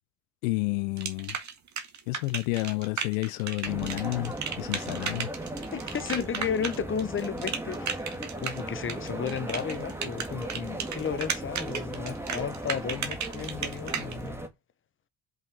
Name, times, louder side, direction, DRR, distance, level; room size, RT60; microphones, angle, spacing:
voice 1, 0.4-1.4 2.1-5.3, left 22 dB, 90° left, 0.5 m, -30 dB
sound 1, 1.0-14.1, right 6 dB, 45° right, 1.9 m, -34 dB
sound 2, 3.6-14.5, right 1 dB, 5° right, 1.8 m, -37 dB
voice 2, 5.7-8.0 8.4-14.4, left 7 dB, 30° left, 1.1 m, -33 dB
5.5 x 5.3 x 4.9 m
hypercardioid pair, 65°, 39 cm